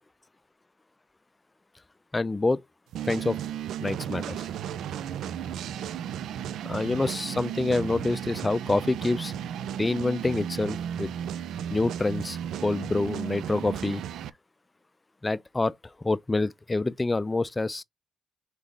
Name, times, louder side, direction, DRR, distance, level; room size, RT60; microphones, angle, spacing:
voice 1, 2.1-2.6 3.0-3.4 3.8-4.5 6.6-9.3 9.8-11.1 11.7-14.0 15.2-17.8, left 2 dB, 25° left, 0.4 m, -27 dB
sound 1, 2.9-14.3, right 9 dB, 75° right, 0.3 m, -34 dB
4.1 x 3.7 x 3.2 m
supercardioid pair, 50°, 0 cm